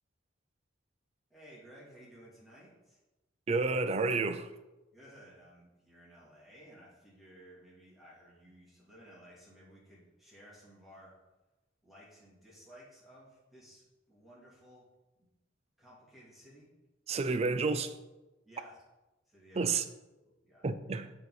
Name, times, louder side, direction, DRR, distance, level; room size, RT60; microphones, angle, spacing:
voice 1, 1.3-3.0 4.9-11.1 11.8-14.9 15.2-15.3 15.8-16.7 18.4-18.8 19.3-19.6 20.2-20.6, equal, ahead, 2.1 m, -56 dB
voice 2, 3.5-4.5 17.1-18.0 19.6-19.8 20.6-21.1, right 4 dB, 35° right, 0.4 m, -30 dB
6.7 x 3.9 x 4.8 m
head